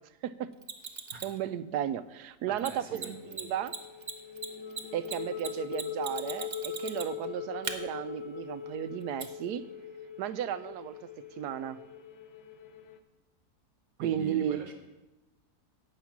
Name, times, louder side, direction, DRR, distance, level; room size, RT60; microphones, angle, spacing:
Mechanisms, 0.6-1.4 2.6-2.7 2.9-3.1 3.3-3.4 3.7-7.2 7.6-7.7 9.2-9.3, right 5 dB, 40° right, 0.7 m, -38 dB
voice 1, 1.2-3.7 4.9-9.6 10.2-11.1 11.4-11.8 14.0-14.6, right 10 dB, 80° right, 14 dB, 1.1 m, -34 dB
voice 2, 2.5-3.5 14.0-14.7, right 6 dB, 60° right, 5 dB, 1.4 m, -43 dB
sound 1, 3.1-13.0, left 7 dB, 85° left, 1.4 m, -41 dB
12.0 x 5.6 x 8.5 m, 1.0 s
omnidirectional pair, 1.7 m